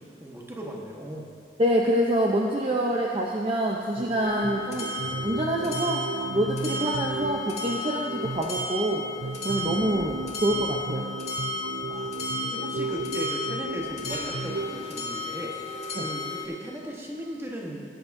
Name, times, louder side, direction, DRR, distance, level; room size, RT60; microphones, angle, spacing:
voice 1, 0.0-1.3 11.9-17.8, equal, 15° right, -2 dB, 1.2 m, -37 dB
voice 2, 1.6-4.9 5.2-6.0 6.3-9.0 9.4-11.1 16.0-16.1, right 1 dB, 30° right, -2 dB, 0.7 m, -26 dB
sound 1, 4.0-15.0, right 3 dB, 85° right, 0.4 m, -35 dB
sound 2, 4.2-16.5, left 2 dB, 40° left, 1.8 m, -34 dB
17.5 x 9.7 x 2.7 m, 2.3 s
head